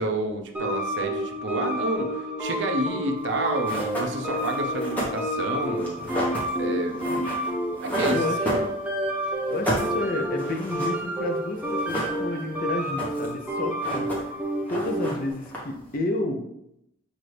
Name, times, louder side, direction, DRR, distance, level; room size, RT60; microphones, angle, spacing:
voice 1, 0.0-6.3 6.6-7.3 7.7-8.2 8.5-8.7, right 2 dB, 60° right, 4 dB, 0.6 m, -30 dB
sound 1, 0.5-15.3, equal, 5° right, 0.5 m, -29 dB
sound 2, 3.3-3.4 3.6-9.1 9.4-11.3 11.6-12.5 12.8-13.4 13.7-14.4 14.7-15.9, right 1 dB, 10° left, 1.0 m, -31 dB
voice 2, 8.1-8.5 9.5-14.3 14.7-16.4, left 2 dB, 45° left, 4 dB, 0.5 m, -30 dB
5.9 x 2.6 x 3.2 m, 0.80 s
head